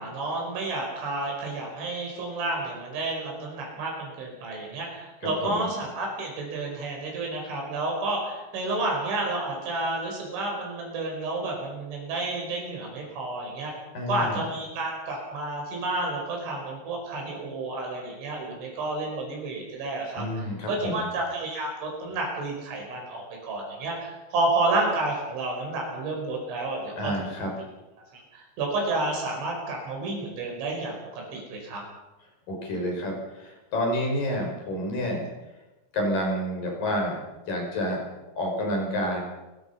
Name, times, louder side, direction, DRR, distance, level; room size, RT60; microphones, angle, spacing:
voice 1, 0.0-13.7 14.1-27.3 28.1-31.8, right 2 dB, 80° right, 0 dB, 7.6 m, -30 dB
voice 2, 13.9-14.5 20.2-21.1 27.0-27.5 32.5-35.3 35.9-37.2 37.5-38.0 38.4-39.2, equal, 45° left, 0 dB, 7.4 m, -29 dB
29.5 x 16.5 x 5.7 m, 1.1 s
omnidirectional pair, 5.3 m